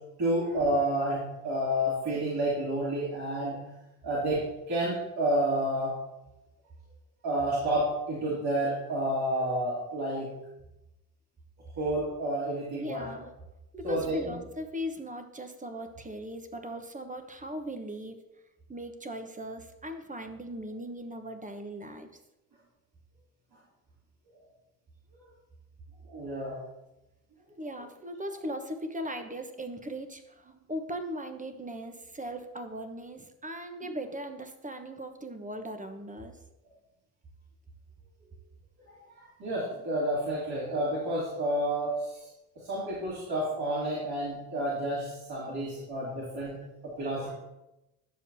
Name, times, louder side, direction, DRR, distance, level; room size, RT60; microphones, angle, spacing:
voice 1, 0.2-3.6 4.0-5.9 7.2-10.3 11.8-13.0 13.8-14.2 26.1-26.6 38.9-42.3 42.6-46.6 46.8-47.3, right 1 dB, 55° right, -8 dB, 3.1 m, -30 dB
voice 2, 12.7-13.3 13.7-18.2 18.7-22.1 27.6-36.4 38.2-38.4 45.5-45.6 46.1-46.3, equal, 15° right, 7 dB, 1.1 m, -39 dB
10.5 x 6.9 x 2.8 m, 0.95 s
hypercardioid pair, 50°, 46 cm